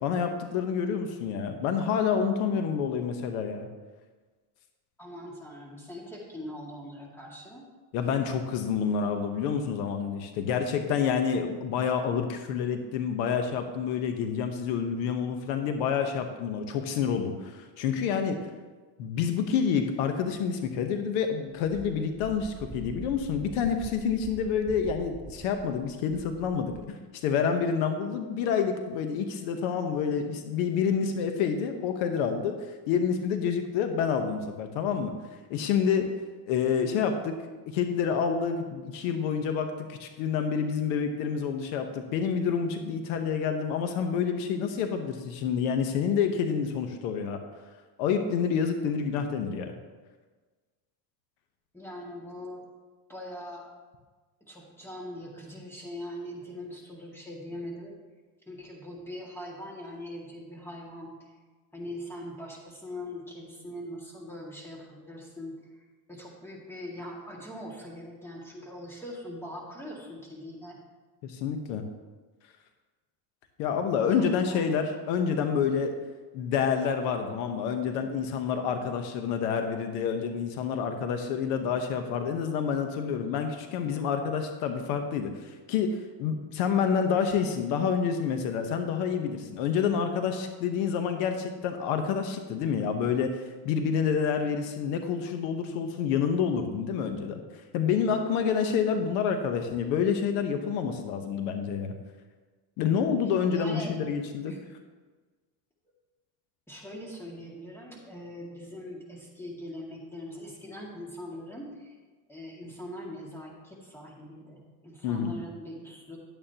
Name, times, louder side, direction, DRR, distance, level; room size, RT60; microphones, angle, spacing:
voice 1, 0.0-3.7 7.9-18.4 19.0-35.1 35.5-36.1 36.5-37.4 37.7-47.4 48.0-49.7 71.2-71.8 73.6-76.0 76.3-97.4 97.7-101.9 102.8-104.5 115.0-115.4, left 6 dB, 80° left, 6 dB, 1.1 m, -28 dB
voice 2, 5.0-7.6 51.7-52.7 53.1-53.7 54.5-57.9 58.5-61.1 61.7-65.6 66.1-70.8 74.1-74.7 103.5-103.9 104.5-104.6 106.7-111.9 112.3-116.2, left 1 dB, 5° left, -2 dB, 2.1 m, -41 dB
Wind, 21.6-26.9, right 4 dB, 15° right, 0.4 m, -45 dB
10.5 x 9.0 x 2.9 m, 1.3 s
supercardioid pair, 125°, 42 cm